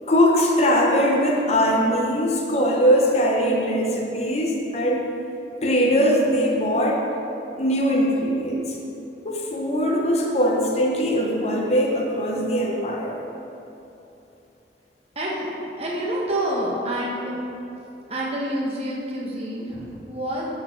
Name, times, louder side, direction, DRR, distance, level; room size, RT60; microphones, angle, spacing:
voice 1, 0.0-5.1 5.6-7.1 7.6-8.8 9.2-13.2, equal, 35° left, -1 dB, 0.8 m, -21 dB
voice 2, 15.1-15.5 15.8-17.3 18.1-20.4, right 1 dB, 35° right, -4 dB, 1.1 m, -27 dB
8.5 x 4.3 x 4.4 m, 2.9 s
head